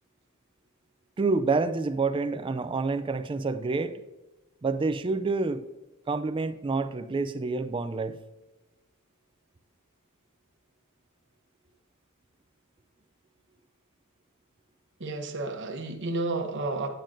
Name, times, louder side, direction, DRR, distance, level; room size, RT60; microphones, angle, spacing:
voice 1, 1.2-4.0 4.6-5.6 6.1-8.2, right 3 dB, 25° right, 0.3 m, -28 dB
voice 2, 15.0-16.9, right 2 dB, 55° right, 0.9 m, -31 dB
9.0 x 8.8 x 2.6 m
head